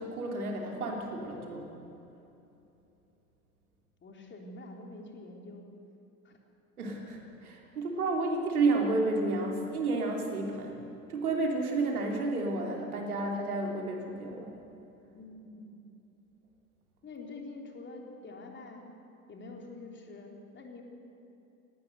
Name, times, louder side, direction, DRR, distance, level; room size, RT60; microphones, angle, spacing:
voice 1, 0.0-1.7 6.8-14.5, right 3 dB, 75° right, 1 dB, 3.2 m, -31 dB
voice 2, 4.0-5.7 6.2-6.4 15.1-15.7 17.0-18.9 19.3-20.8, left 2 dB, 25° left, 1 dB, 3.4 m, -46 dB
19.0 x 18.0 x 8.0 m, 2.9 s
figure-of-eight pair, 75°, 45 cm